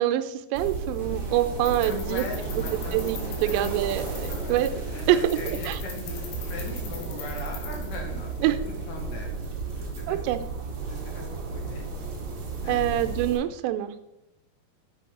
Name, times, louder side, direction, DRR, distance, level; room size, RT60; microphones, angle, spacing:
voice 1, 0.0-2.2 2.9-4.7 5.1-5.2 5.5-5.8 8.4-8.6 10.1-10.4 12.7-13.9, right 13 dB, 85° right, 9 dB, 2.7 m, -25 dB
sound 1, 0.5-13.4, right 3 dB, 50° right, 1.7 m, -34 dB
sound 2, 1.0-6.8, left 1 dB, 45° left, 1.2 m, -46 dB
sound 3, 1.2-8.5, left 5 dB, 90° left, 3.5 m, -43 dB
voice 2, 1.8-3.7 4.3-4.6 4.9-9.4 9.6-10.2 10.9-11.3 11.5-11.9 12.6-13.1, left 3 dB, 65° left, 1 dB, 2.4 m, -40 dB
7.6 x 6.3 x 3.6 m, 0.90 s
omnidirectional pair, 5.1 m